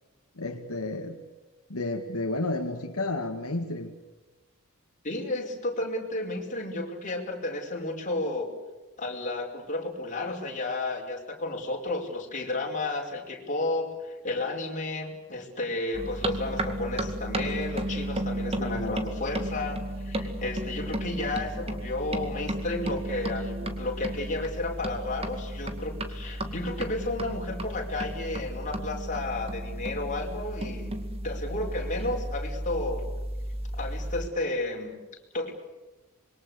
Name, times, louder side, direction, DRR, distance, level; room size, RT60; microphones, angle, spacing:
voice 1, 0.4-1.2 1.7-3.9 18.6-19.0, left 2 dB, 75° left, 3 dB, 2.1 m, -32 dB
voice 2, 5.0-8.5 9.0-30.9 31.2-33.0 33.7-35.0 35.3-35.5, left 2 dB, 35° left, 1 dB, 5.0 m, -32 dB
sound 1, 15.9-34.3, right 1 dB, 25° right, 2.2 m, -34 dB
26.5 x 23.0 x 8.1 m, 1.2 s
head